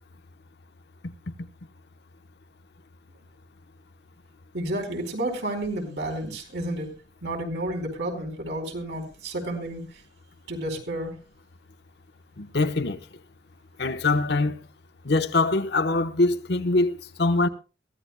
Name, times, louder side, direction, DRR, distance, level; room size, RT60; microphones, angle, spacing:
voice 1, 4.5-6.9 7.2-9.8 10.5-11.1, right 1 dB, 70° right, 4.4 m, -31 dB
voice 2, 12.4-13.0 13.8-14.6 15.0-17.5, left 2 dB, 60° left, 1.0 m, -23 dB
23.0 x 15.5 x 2.2 m
head